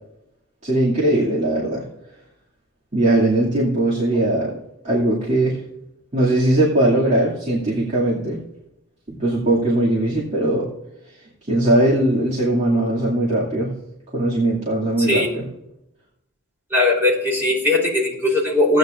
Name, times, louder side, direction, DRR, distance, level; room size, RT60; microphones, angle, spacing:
voice 1, 0.6-1.8 2.9-4.5 4.8-5.6 6.1-8.4 9.1-10.7 11.5-13.7 14.1-15.4, right 1 dB, 35° right, -6 dB, 2.5 m, -19 dB
voice 2, 15.0-15.3 16.7-18.8, left 2 dB, 10° right, -4 dB, 3.7 m, -19 dB
16.0 x 9.6 x 2.6 m, 0.86 s
head